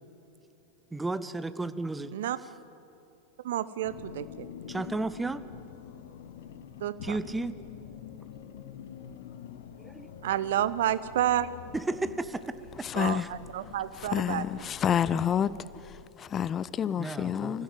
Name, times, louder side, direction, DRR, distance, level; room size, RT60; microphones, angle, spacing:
voice 1, 0.9-2.1 4.7-5.4 7.0-7.6 9.8-10.1 11.7-12.9 13.1-13.3 17.0-17.6, right 2 dB, 10° right, 0.9 m, -33 dB
voice 2, 3.4-4.5 6.8-7.2 10.2-11.5 12.9-14.7, right 12 dB, 55° right, 0.8 m, -30 dB
sound 1, 3.8-16.0, left 9 dB, 55° left, 1.2 m, -46 dB
voice 3, 12.8-13.3 14.0-15.5 15.8-17.6, left 8 dB, 25° left, 0.5 m, -29 dB
25.5 x 15.5 x 7.8 m
figure-of-eight pair, 90°, 0 cm